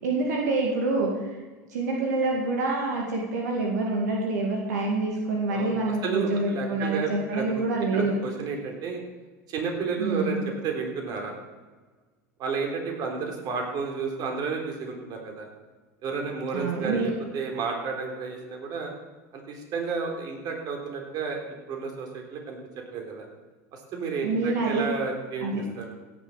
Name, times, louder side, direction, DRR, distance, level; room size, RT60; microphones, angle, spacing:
voice 1, 0.0-1.1 1.7-8.1 10.0-10.4 16.5-17.1 24.2-24.9 25.4-25.6, right 3 dB, 80° right, -1 dB, 2.3 m, -26 dB
voice 2, 5.5-7.6 7.9-9.0 9.5-11.3 12.4-15.5 16.0-18.9 19.3-21.4 21.7-22.6 22.9-23.3 23.7-25.9, right 5 dB, 50° right, 2 dB, 3.8 m, -31 dB
16.5 x 7.3 x 6.6 m, 1.3 s
hypercardioid pair, 95°, 9 cm